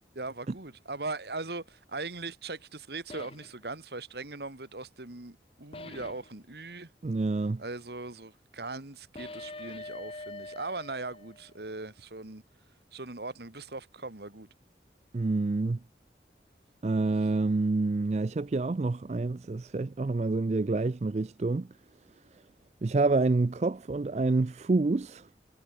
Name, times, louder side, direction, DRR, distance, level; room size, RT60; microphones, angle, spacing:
voice 1, 0.2-6.9 7.6-12.4 12.9-14.5, right 3 dB, 70° right, 1.9 m, -39 dB
sound 1, 3.1-3.5 5.7-6.3 9.1-11.6, left 2 dB, 30° left, 1.2 m, -44 dB
voice 2, 7.0-7.6 15.1-15.8 16.8-21.7 22.8-25.3, right 3 dB, 40° right, 0.4 m, -27 dB
head